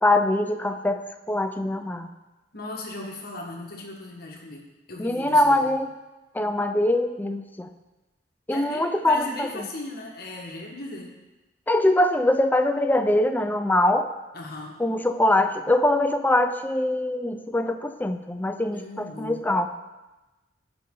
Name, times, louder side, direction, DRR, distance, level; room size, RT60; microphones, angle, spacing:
voice 1, 0.0-1.0 1.3-2.1 5.0-5.9 6.3-7.7 8.5-9.7 11.7-14.1 14.8-19.7, left 1 dB, 10° left, 8 dB, 0.5 m, -23 dB
voice 2, 2.5-5.7 8.5-11.1 14.3-14.8 18.7-19.5, left 2 dB, 55° left, -1 dB, 1.5 m, -37 dB
15.5 x 5.4 x 3.8 m, 1.1 s
head